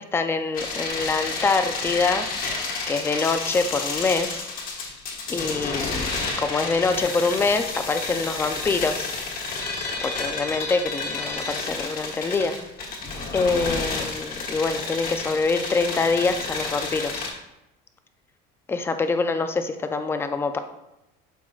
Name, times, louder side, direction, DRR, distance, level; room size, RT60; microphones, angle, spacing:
voice 1, 0.0-4.4 5.3-6.1 6.4-9.1 10.0-12.6 13.3-17.3 18.7-20.6, left 4 dB, 10° left, 8 dB, 0.3 m, -25 dB
sound 1, 0.5-17.3, left 3 dB, 45° left, 1.3 m, -30 dB
11.5 x 4.6 x 2.3 m, 0.91 s
cardioid pair, 160°, 20 cm